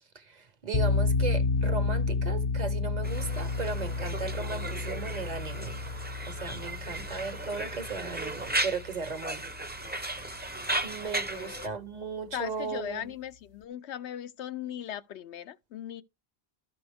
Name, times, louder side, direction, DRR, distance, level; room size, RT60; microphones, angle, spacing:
voice 1, 0.6-5.8 6.3-9.4 10.1-10.2 10.8-13.1, right 5 dB, 45° right, 0.8 m, -36 dB
sound 1, 0.7-9.6, left 4 dB, 40° left, 0.5 m, -31 dB
Conversation, 3.0-11.7, right 2 dB, 10° right, 0.5 m, -36 dB
voice 2, 11.0-11.7 12.3-16.0, left 10 dB, 80° left, 0.9 m, -38 dB
13.0 x 5.2 x 3.4 m
omnidirectional pair, 1.1 m